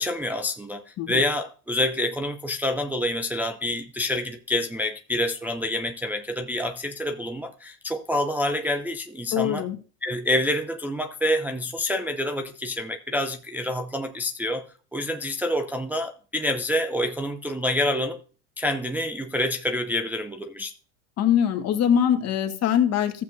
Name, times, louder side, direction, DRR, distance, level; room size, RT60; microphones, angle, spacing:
voice 1, 0.0-9.7 10.0-14.6 14.9-18.2 18.6-20.7, left 1 dB, 5° right, 0.4 m, -27 dB
voice 2, 9.3-9.8 21.2-23.2, left 9 dB, 45° left, 1.4 m, -22 dB
15.0 x 7.2 x 2.6 m
hypercardioid pair, 95°, 37 cm